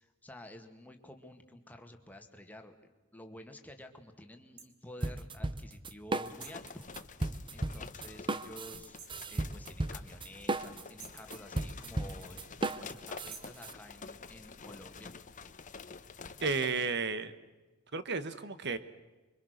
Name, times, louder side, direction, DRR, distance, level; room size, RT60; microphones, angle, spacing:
voice 1, 0.0-2.8 3.1-7.1 7.5-12.4 12.7-15.1, left 1 dB, 10° left, 5 dB, 2.0 m, -51 dB
sound 1, 4.6-4.7 6.4-6.7 9.0-9.3 11.0-11.3 13.3-13.6, right 6 dB, 90° right, 2.7 m, -51 dB
sound 2, 5.0-6.7 6.9-13.7, right 2 dB, 25° right, 0.8 m, -35 dB
sound 3, 6.1-16.9, left 5 dB, 40° left, 1.0 m, -49 dB
voice 2, 16.4-17.3 17.9-18.8, right 4 dB, 55° right, 12 dB, 1.4 m, -32 dB
26.0 x 24.0 x 6.6 m, 1.2 s
head